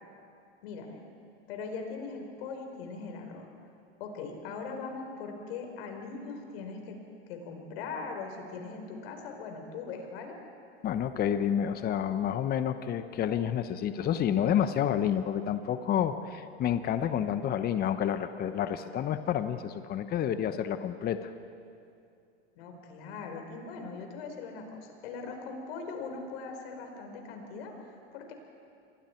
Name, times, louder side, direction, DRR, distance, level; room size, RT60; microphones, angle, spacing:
voice 1, 0.6-1.0 1.5-3.5 4.0-7.0 7.3-10.4 22.6-28.3, left 4 dB, 65° left, 4 dB, 4.5 m, -40 dB
voice 2, 10.8-21.3, left 9 dB, 30° left, 10 dB, 1.1 m, -29 dB
28.0 x 23.0 x 4.6 m, 2.5 s
hypercardioid pair, 110°, 32 cm